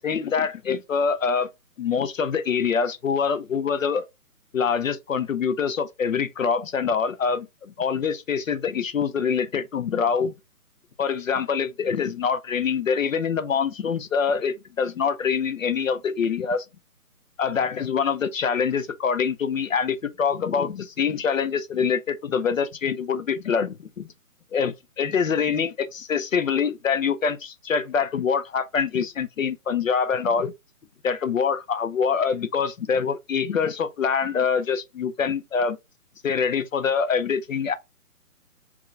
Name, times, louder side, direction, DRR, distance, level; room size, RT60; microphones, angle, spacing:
voice 1, 0.0-1.5 1.8-4.0 4.5-10.3 11.0-16.6 17.4-24.1 24.5-30.5 31.0-35.8 36.2-37.7, left 6 dB, 60° left, 0.6 m, -25 dB
3.9 x 3.0 x 3.3 m
figure-of-eight pair, 150°, 45 cm